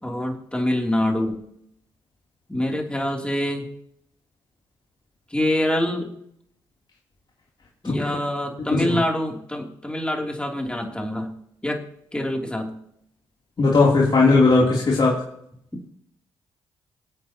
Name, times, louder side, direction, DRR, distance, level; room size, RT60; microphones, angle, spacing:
voice 1, 0.0-1.4 2.5-3.7 5.3-6.1 7.8-11.3 11.6-11.8 12.1-12.7, left 1 dB, 10° left, 1 dB, 3.1 m, -25 dB
voice 2, 13.6-15.1, left 3 dB, 45° left, -4 dB, 3.3 m, -17 dB
23.0 x 8.5 x 3.0 m, 0.71 s
supercardioid pair, 55°, 11 cm